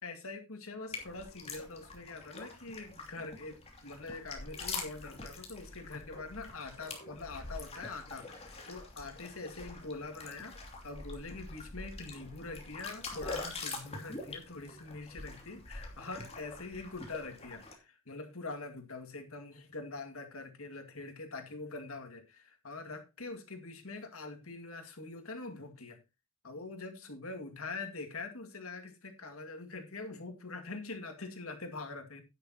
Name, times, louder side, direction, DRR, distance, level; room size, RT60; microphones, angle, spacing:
voice 1, 0.0-26.0 26.4-32.2, left 3 dB, 85° left, 2.2 m, -44 dB
sound 1, 0.9-17.7, left 3 dB, 30° left, 2.8 m, -45 dB
11.5 x 9.8 x 3.0 m
head